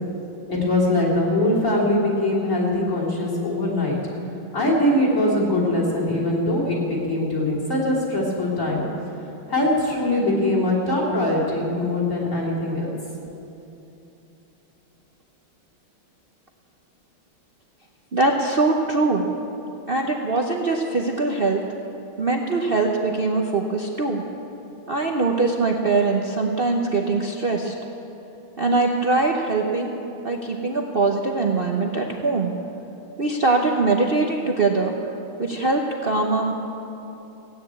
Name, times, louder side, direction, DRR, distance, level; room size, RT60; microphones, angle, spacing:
voice 1, 0.5-4.0 4.5-8.9 9.5-12.9, left 1 dB, 35° left, -5 dB, 3.5 m, -22 dB
voice 2, 18.1-19.3 19.9-21.6 22.2-24.2 24.9-27.7 28.6-29.9 30.2-32.5 33.2-35.0 35.4-36.5, right 3 dB, 75° right, 0 dB, 0.5 m, -22 dB
16.5 x 9.8 x 8.4 m, 2.9 s
omnidirectional pair, 2.3 m